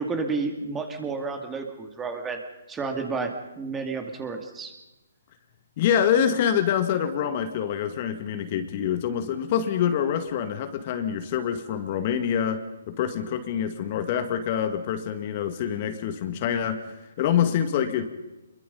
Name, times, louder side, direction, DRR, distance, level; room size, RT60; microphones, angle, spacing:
voice 1, 0.0-2.4 2.7-4.7, right 4 dB, 10° right, 5 dB, 2.3 m, -31 dB
voice 2, 5.8-18.1, left 9 dB, 40° left, 9 dB, 1.9 m, -26 dB
25.5 x 22.5 x 5.5 m, 1.0 s
hypercardioid pair, 145°, 0 cm